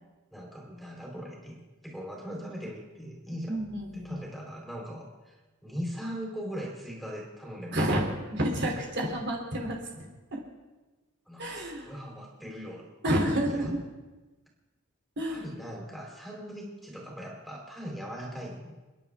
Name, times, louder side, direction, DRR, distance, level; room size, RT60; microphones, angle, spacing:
voice 1, 0.3-1.6 1.8-3.7 3.9-5.4 5.6-8.1 11.3-12.9 13.5-13.7 15.3-18.7, equal, ahead, -2 dB, 3.7 m, -40 dB
voice 2, 3.5-4.2 7.7-8.0 8.3-10.4 11.4-11.9 13.0-13.8 15.2-15.4, right 1 dB, 55° right, -1 dB, 3.1 m, -29 dB
29.5 x 10.5 x 3.6 m, 1.2 s
head